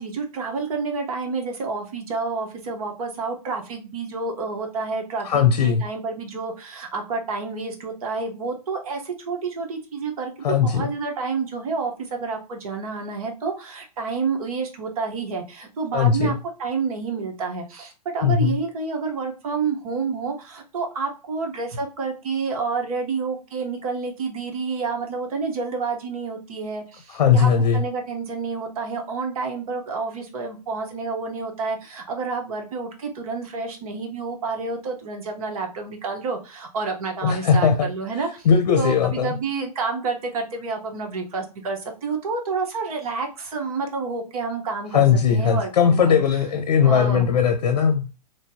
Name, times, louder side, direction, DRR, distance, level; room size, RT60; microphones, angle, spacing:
voice 1, 0.0-38.5 38.8-46.2 46.8-47.4, right 4 dB, 65° right, 1.1 m, -29 dB
voice 2, 5.2-5.8 10.4-10.9 15.9-16.4 18.2-18.6 27.1-27.8 37.2-37.9 38.4-39.4 44.9-48.1, left 7 dB, 75° left, 0.6 m, -19 dB
3.1 x 2.7 x 2.7 m
hypercardioid pair, 130°, 20 cm